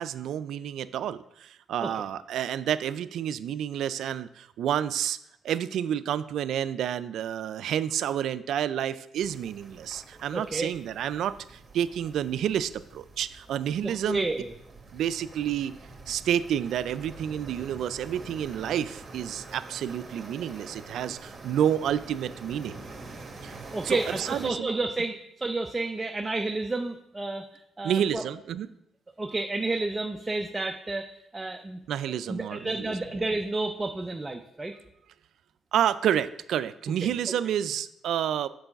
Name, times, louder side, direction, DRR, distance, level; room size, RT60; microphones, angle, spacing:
voice 1, 0.0-5.2 5.4-14.3 14.9-15.7 16.1-22.8 23.4-23.5 23.8-24.7 27.8-28.7 31.9-32.9 35.7-38.5, right 10 dB, 75° right, 14 dB, 0.3 m, -29 dB
sound 1, 9.2-24.5, right 3 dB, 35° right, 1.3 m, -45 dB
voice 2, 10.3-10.7 13.8-14.5 23.7-27.5 27.8-28.2 29.2-31.8 32.3-34.7 37.0-37.1, right 2 dB, 20° right, 4 dB, 0.5 m, -31 dB
6.7 x 4.7 x 5.8 m, 0.79 s
cardioid pair, 90°, 0 cm